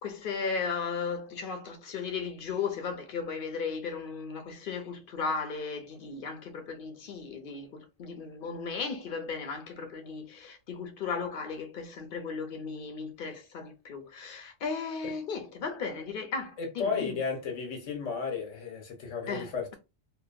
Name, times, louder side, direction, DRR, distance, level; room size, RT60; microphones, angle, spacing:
voice 1, 0.0-17.2 19.3-19.8, left 5 dB, 55° left, 0.7 m, -36 dB
voice 2, 16.6-19.8, left 5 dB, 90° left, 1.3 m, -33 dB
2.7 x 2.1 x 2.4 m
omnidirectional pair, 1.2 m